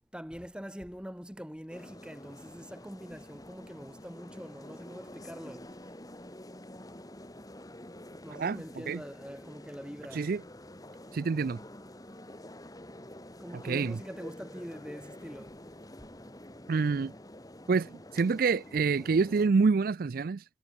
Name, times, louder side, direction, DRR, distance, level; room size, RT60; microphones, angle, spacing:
voice 1, 0.1-5.8 8.2-10.3 13.4-15.6, equal, 5° right, 1.8 m, -44 dB
sound 1, 1.7-19.5, left 1 dB, 20° left, 2.4 m, -48 dB
voice 2, 8.3-9.0 10.1-10.4 11.1-11.6 13.6-14.0 16.7-17.1 17.7-20.4, right 4 dB, 50° right, 0.4 m, -27 dB
head